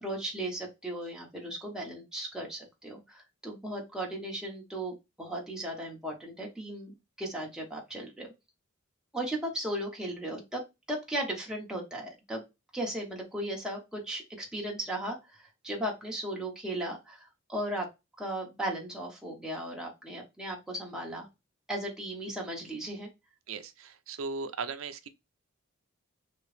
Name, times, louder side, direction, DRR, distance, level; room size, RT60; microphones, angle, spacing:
voice 1, 0.0-8.3 9.1-10.6 10.9-12.4 12.7-17.9 18.2-21.3 21.7-23.1, right 1 dB, 5° right, 0.8 m, -36 dB
voice 2, 23.5-25.1, right 4 dB, 70° right, 0.5 m, -37 dB
3.0 x 2.9 x 3.2 m
head